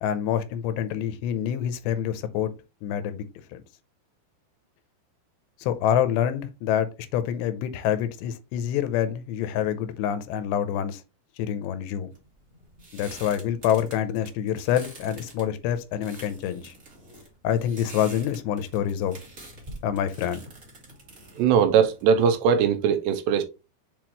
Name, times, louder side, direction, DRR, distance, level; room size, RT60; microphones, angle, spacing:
voice 1, 0.0-2.5 2.8-3.3 3.5-3.6 5.6-11.0 11.4-12.1 12.9-16.7 17.4-19.2 19.8-20.4, left 9 dB, 85° left, 2.8 m, -26 dB
sound 1, 12.1-22.5, right 2 dB, 60° right, 0.7 m, -46 dB
voice 2, 21.4-23.4, right 7 dB, 80° right, 2.7 m, -20 dB
7.7 x 4.2 x 3.0 m
omnidirectional pair, 5.1 m